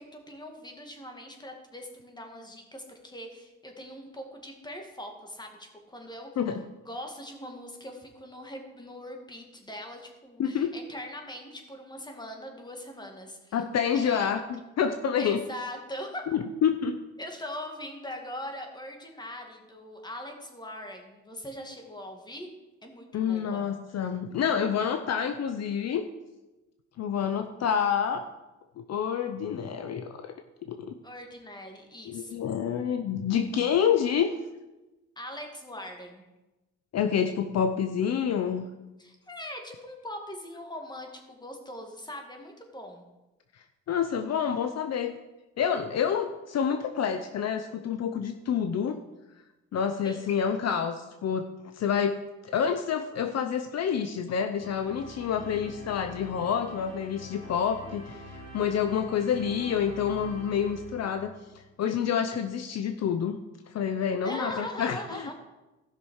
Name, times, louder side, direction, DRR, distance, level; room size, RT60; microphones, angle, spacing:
voice 1, 0.0-6.3 6.8-13.6 13.9-14.3 15.2-16.3 17.2-22.5 22.8-23.7 31.0-32.4 35.2-36.2 39.0-43.0 50.0-50.3 55.4-56.0 64.2-65.3, left 1 dB, 15° left, 3 dB, 2.2 m, -41 dB
voice 2, 10.4-10.8 13.5-15.4 16.3-17.0 23.1-26.1 27.0-28.2 28.8-30.3 30.7-30.9 32.0-34.4 36.9-38.7 43.5-45.1 45.6-49.0 49.7-52.2 52.4-63.4 63.7-65.3, left 7 dB, 60° left, 8 dB, 0.7 m, -28 dB
sound 1, 54.6-61.6, left 1 dB, 30° left, 3.7 m, -45 dB
15.5 x 6.1 x 4.8 m, 1.1 s
cardioid pair, 90°, 30 cm